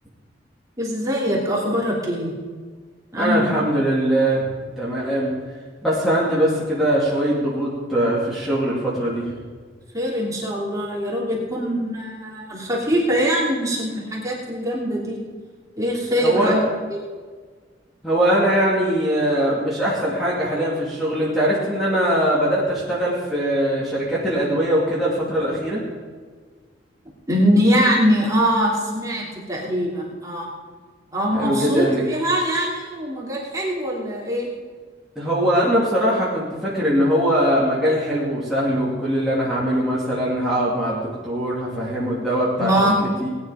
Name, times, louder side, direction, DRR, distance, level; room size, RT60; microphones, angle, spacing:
voice 1, 0.8-2.3 3.1-3.5 9.9-15.2 15.8-16.6 16.9-17.0 27.3-30.5 31.1-34.5 42.6-43.0, equal, 20° right, -4 dB, 3.1 m, -22 dB
voice 2, 3.2-5.4 5.8-9.3 16.2-16.6 18.0-25.8 31.3-32.0 35.2-42.7 43.0-43.3, equal, ahead, -9 dB, 2.6 m, -21 dB
19.0 x 10.0 x 5.1 m, 1.6 s
head